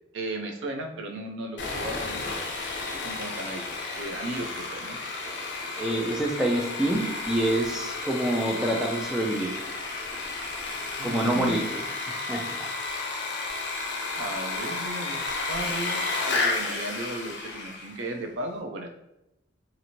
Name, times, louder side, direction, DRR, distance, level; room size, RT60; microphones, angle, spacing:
voice 1, 0.1-2.3 2.9-5.0 11.0-11.7 14.2-18.9, right 2 dB, 75° right, 3 dB, 0.4 m, -36 dB
Sawing, 1.6-18.0, left 3 dB, 65° left, 0.6 m, -32 dB
voice 2, 5.8-9.6 11.0-11.8 12.3-12.7, right 1 dB, 5° right, 0 dB, 0.4 m, -27 dB
2.8 x 2.5 x 2.8 m, 0.88 s
head